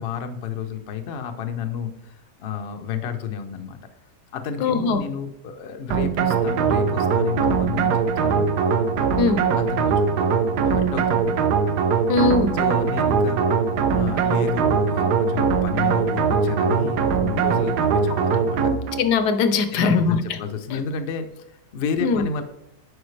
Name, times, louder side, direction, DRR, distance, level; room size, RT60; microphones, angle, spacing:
voice 1, 0.0-3.8 4.3-8.5 9.6-10.1 10.6-11.4 12.6-18.6 19.7-22.4, left 6 dB, 60° left, 7 dB, 0.6 m, -31 dB
voice 2, 4.6-5.0 9.2-9.4 12.1-12.5 19.0-20.2 20.7-20.8 22.0-22.3, left 4 dB, 75° left, 9 dB, 1.2 m, -20 dB
sound 1, 5.9-19.1, right 6 dB, 75° right, 1.2 m, -21 dB
9.4 x 4.8 x 3.2 m, 0.85 s
omnidirectional pair, 1.8 m